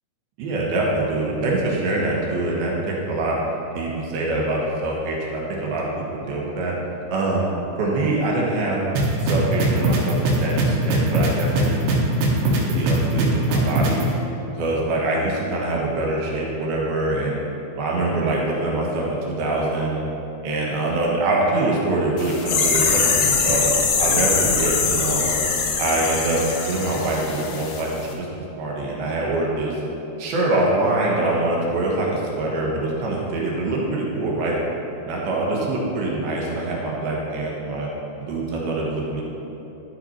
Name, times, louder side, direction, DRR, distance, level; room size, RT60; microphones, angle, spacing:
voice 1, 0.4-3.4 3.7-6.7 7.1-8.8 9.2-11.8 12.4-14.0 14.5-17.4 17.8-20.0 20.4-23.7 24.0-25.3 25.8-28.3 28.6-29.8 30.2-34.6 35.0-37.9 38.2-39.2, right 2 dB, 75° right, -3 dB, 3.1 m, -24 dB
sound 1, 9.0-14.0, right 2 dB, 90° right, 3.2 m, -20 dB
sound 2, 22.2-27.8 28.1-28.2, left 5 dB, 75° left, 2.8 m, -22 dB
12.0 x 5.6 x 4.3 m, 3.0 s
omnidirectional pair, 4.6 m